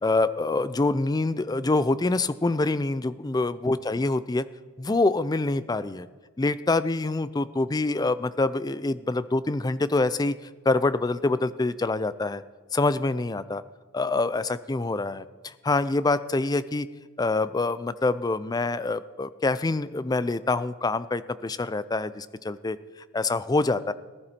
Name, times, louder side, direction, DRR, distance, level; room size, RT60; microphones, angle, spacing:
voice 1, 0.0-4.4 4.8-6.1 6.4-10.4 10.7-12.4 12.7-13.6 13.9-16.9 17.2-22.8 23.1-23.9, left 2 dB, 20° left, 15 dB, 0.4 m, -25 dB
18.5 x 12.0 x 4.3 m, 1.4 s
head